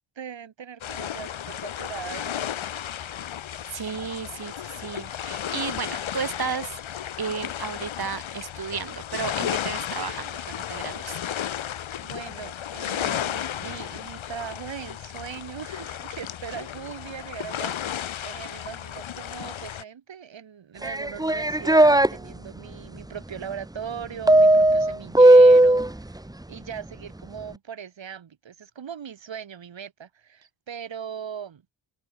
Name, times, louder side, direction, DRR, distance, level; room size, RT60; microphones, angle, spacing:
voice 1, 0.2-2.7 12.0-26.2 26.5-31.6, right 8 dB, 70° right, 7.5 m, -39 dB
sound 1, 0.8-19.8, left 10 dB, 80° left, 2.8 m, -34 dB
voice 2, 3.7-6.7 7.2-11.2, right 6 dB, 50° right, 3.6 m, -33 dB
sound 2, 20.8-22.1 24.3-25.9, right 1 dB, 10° right, 1.4 m, -15 dB
open air
cardioid pair, 65°, 46 cm